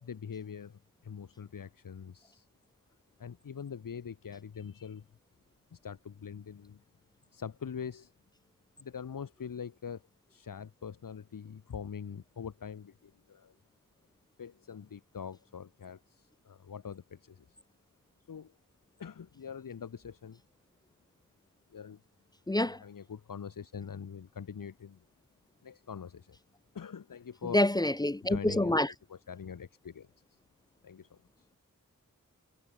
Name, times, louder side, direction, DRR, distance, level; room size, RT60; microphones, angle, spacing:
voice 1, 0.0-2.5 3.2-5.1 5.7-6.8 7.3-8.1 8.8-13.5 14.4-17.6 18.3-18.6 19.0-20.4 21.7-22.0 22.5-25.0 25.6-26.4 26.7-27.7 28.2-30.4 30.8-31.5, left 7 dB, 70° left, 1.1 m, -44 dB
voice 2, 22.5-22.8 27.5-28.9, left 1 dB, 10° left, 0.4 m, -26 dB
cardioid pair, 45°, 34 cm